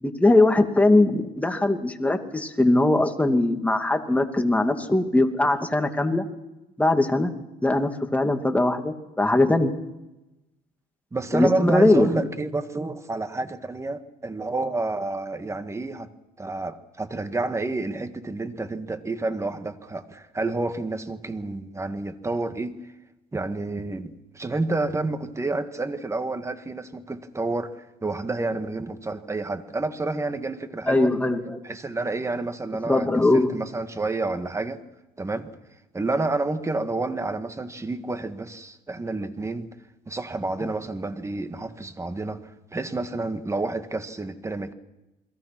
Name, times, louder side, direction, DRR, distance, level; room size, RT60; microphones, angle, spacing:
voice 1, 0.0-6.2 6.8-7.3 7.6-9.7 11.3-12.3 30.9-31.6 32.9-33.5, left 2 dB, 10° left, 2.5 m, -21 dB
voice 2, 11.1-16.1 16.4-22.8 23.3-31.1 31.6-33.1 33.3-34.8 35.2-35.5 35.9-39.7 40.1-44.7, right 2 dB, 15° right, 1.9 m, -29 dB
29.5 x 22.0 x 6.1 m
cardioid pair, 110°, 17 cm